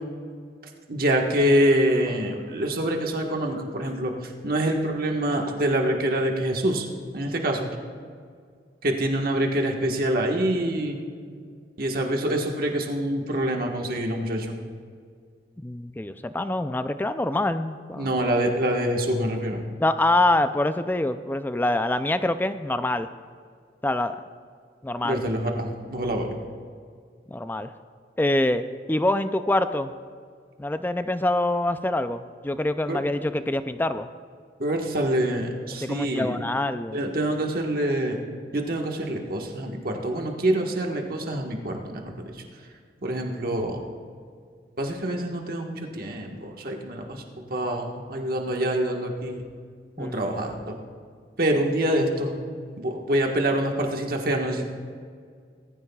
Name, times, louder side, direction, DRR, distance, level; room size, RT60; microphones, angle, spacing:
voice 1, 0.9-6.9 7.1-7.7 8.8-11.0 11.8-14.6 18.0-19.6 25.0-26.3 32.9-33.0 34.6-36.4 36.9-38.2 38.5-42.3 43.0-43.8 44.8-47.2 47.5-49.4 50.0-50.8 51.4-52.3 52.8-54.6, right 1 dB, 50° right, 1 dB, 1.4 m, -25 dB
voice 2, 15.6-18.1 19.8-23.1 23.8-24.2 24.8-25.3 27.3-27.7 28.2-29.9 30.6-34.1 35.8-37.0 50.0-50.2, left 1 dB, 10° left, 11 dB, 0.3 m, -25 dB
19.0 x 15.5 x 2.3 m, 2.1 s
head